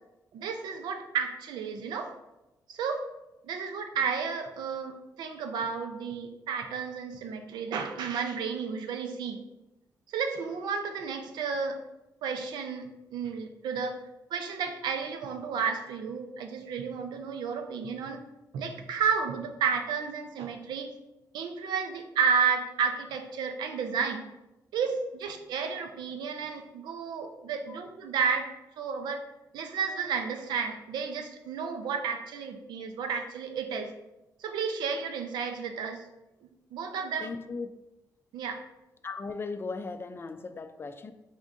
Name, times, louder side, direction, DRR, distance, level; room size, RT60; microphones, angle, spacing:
voice 1, 0.3-2.1 2.7-3.0 3.4-9.4 10.1-11.8 12.2-14.0 14.3-18.2 18.5-20.9 21.3-24.2 24.7-28.5 28.8-29.2 29.5-33.9 34.4-36.1 36.4-37.3 38.3-38.6, right 6 dB, 85° right, 0.5 m, -32 dB
voice 2, 37.2-37.7 39.0-41.1, left 4 dB, 30° left, 0.3 m, -37 dB
3.5 x 2.6 x 3.7 m
cardioid pair, 75°, 7 cm